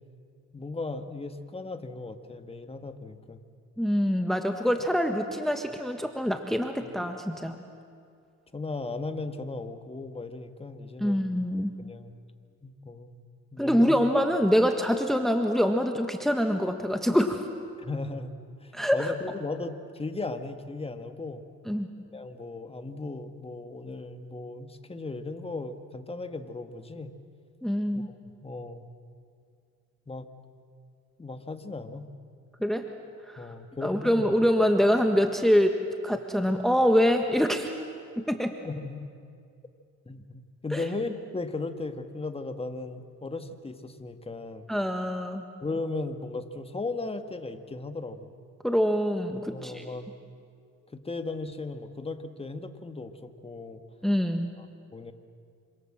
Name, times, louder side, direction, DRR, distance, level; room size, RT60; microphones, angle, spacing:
voice 1, 0.5-3.4 6.8-6.9 8.5-11.4 11.8-12.1 12.6-13.2 13.5-14.0 17.8-21.4 22.1-27.1 27.9-28.1 28.4-28.9 30.1-30.3 31.2-32.1 33.4-34.2 38.6-39.1 40.0-44.7 45.6-48.3 49.5-50.1 50.9-53.8 54.6-54.7 54.9-55.1, left 3 dB, 20° left, 8 dB, 1.8 m, -36 dB
voice 2, 3.8-7.6 11.0-11.8 13.6-17.4 18.7-19.1 21.7-21.9 27.6-28.1 32.6-32.8 33.3-33.5 33.8-35.7 36.0-37.7 38.2-38.5 40.7-40.8 44.7-45.4 48.6-49.8 54.0-54.5, equal, ahead, 5 dB, 1.5 m, -25 dB
27.0 x 26.0 x 7.6 m, 2.4 s
cardioid pair, 90°, 30 cm